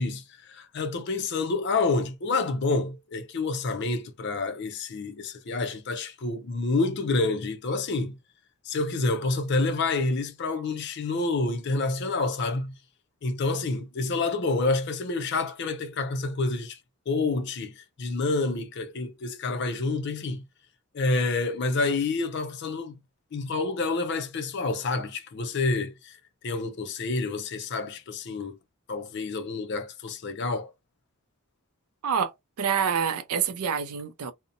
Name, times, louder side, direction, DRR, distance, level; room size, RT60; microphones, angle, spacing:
voice 1, 0.0-8.2 8.6-12.8 13.2-16.8 17.1-20.4 20.9-23.0 23.3-26.2 26.4-28.6 28.9-30.7, left 3 dB, 50° left, 0.4 m, -28 dB
voice 2, 32.6-34.3, right 7 dB, 85° right, 0.5 m, -27 dB
2.6 x 2.1 x 2.6 m
head